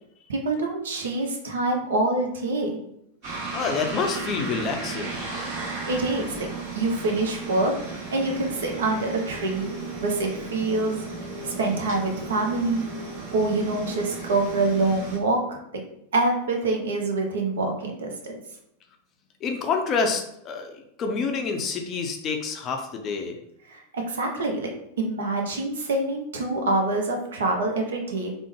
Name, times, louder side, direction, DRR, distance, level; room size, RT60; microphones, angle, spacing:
voice 1, 0.3-2.8 5.5-6.5 6.7-7.7 8.1-9.7 10.0-11.0 11.4-12.9 13.3-15.6 16.1-18.4 23.7-24.7 25.0-28.3, right 2 dB, 65° right, 2 dB, 0.6 m, -26 dB
sound 1, 3.2-15.2, right 3 dB, 45° right, 1.1 m, -35 dB
voice 2, 3.5-5.2 19.4-20.7 21.0-23.4, left 5 dB, 30° left, 4 dB, 0.4 m, -27 dB
3.4 x 2.0 x 3.1 m, 0.78 s
figure-of-eight pair, 90°, 0 cm